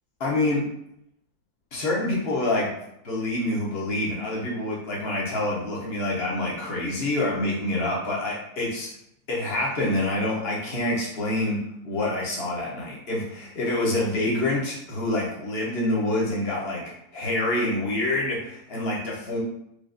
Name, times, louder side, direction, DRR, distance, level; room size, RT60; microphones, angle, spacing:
voice 1, 0.2-0.6 1.7-2.7 3.0-8.9 9.3-16.8 17.1-19.4, left 1 dB, 45° left, -4 dB, 1.1 m, -26 dB
4.9 x 2.6 x 2.6 m, 0.76 s
omnidirectional pair, 1.6 m